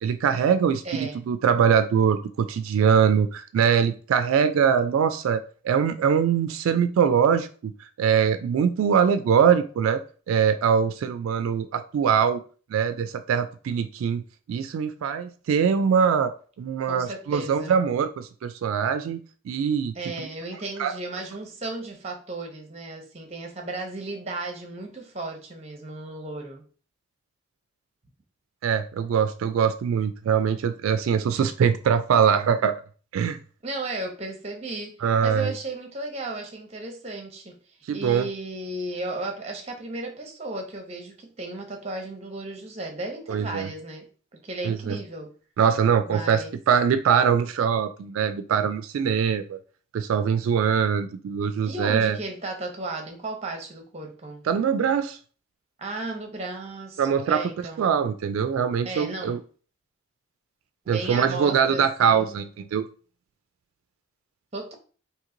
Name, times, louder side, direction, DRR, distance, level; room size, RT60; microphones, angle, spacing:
voice 1, 0.0-7.7 8.0-12.4 12.7-14.2 14.5-16.3 16.6-19.2 19.5-19.9 20.8-20.9 28.6-32.7 33.1-33.4 35.0-35.5 37.9-38.3 43.3-43.7 44.6-45.0 45.6-49.6 49.9-52.2 54.5-55.2 57.0-57.5 57.8-59.4 60.9-62.8, right 7 dB, 85° right, 11 dB, 0.3 m, -22 dB
voice 2, 0.8-1.2 16.9-17.8 19.9-26.6 33.6-34.9 35.2-37.5 37.9-44.0 44.4-45.3 46.0-46.5 51.6-54.4 55.8-57.9 58.8-59.4 60.8-62.4 64.5-64.7, right 2 dB, 30° right, 3 dB, 0.7 m, -34 dB
3.0 x 2.8 x 3.7 m, 0.40 s
head